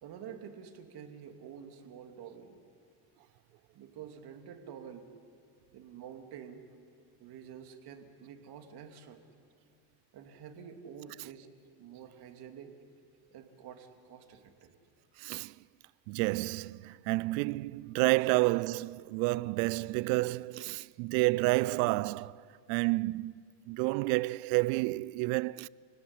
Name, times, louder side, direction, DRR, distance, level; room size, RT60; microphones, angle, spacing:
voice 1, 0.0-2.6 3.7-5.1 5.7-6.6 7.2-9.2 10.1-11.5 11.8-12.7 13.3-14.7 18.2-18.3, right 8 dB, 60° right, 2.9 m, -48 dB
voice 2, 15.2-15.5 16.1-22.4 22.7-23.3 23.7-25.7, right 23 dB, 85° right, 0.6 m, -30 dB
28.5 x 17.5 x 9.9 m
cardioid pair, 110°, 44 cm